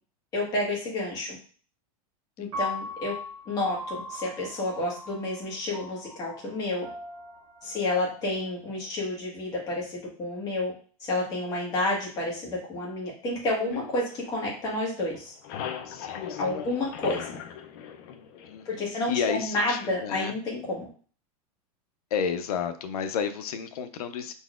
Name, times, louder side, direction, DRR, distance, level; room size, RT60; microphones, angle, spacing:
voice 1, 0.3-1.4 2.4-3.1 3.5-6.9 7.6-10.7 11.1-15.3 16.4-17.4 18.6-20.9, left 2 dB, 20° left, -4 dB, 1.4 m, -30 dB
Piano, 2.5-8.7, left 2 dB, 25° right, 1.6 m, -39 dB
sound 1, 13.7-14.9 15.1-18.8, left 8 dB, 35° left, 0.4 m, -39 dB
voice 2, 15.8-16.4 18.4-20.3 22.1-24.3, left 7 dB, 80° left, 9 dB, 0.7 m, -32 dB
5.0 x 4.0 x 2.4 m, 0.41 s
supercardioid pair, 175°, 19 cm